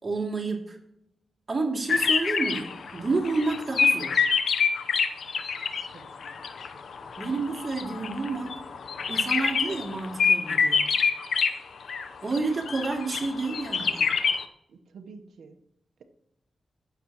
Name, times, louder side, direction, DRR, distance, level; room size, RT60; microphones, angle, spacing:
voice 1, 0.0-0.8 1.5-4.3 7.2-8.5 9.1-10.9 12.2-14.1, right 3 dB, 45° right, 0 dB, 2.6 m, -30 dB
sound 1, 1.9-5.9 6.2-11.6 11.9-12.4 12.7-14.4, left 5 dB, 75° left, 0.7 m, -26 dB
voice 2, 5.9-6.4 14.7-15.6, right 4 dB, 85° right, 6 dB, 1.0 m, -49 dB
16.5 x 6.8 x 3.0 m, 0.77 s
cardioid pair, 55°, 0 cm